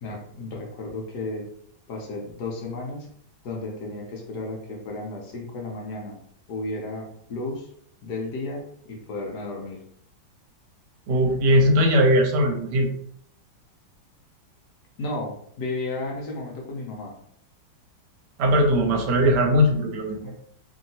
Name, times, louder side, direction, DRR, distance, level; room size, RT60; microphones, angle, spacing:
voice 1, 0.0-1.5 1.9-3.1 3.4-6.2 6.5-7.7 8.0-9.8 15.0-17.1 20.2-20.3, left 2 dB, 65° left, -1 dB, 1.1 m, -33 dB
voice 2, 11.1-12.9 18.4-20.2, equal, 65° right, 1 dB, 1.2 m, -19 dB
3.0 x 2.7 x 2.7 m, 0.65 s
omnidirectional pair, 2.1 m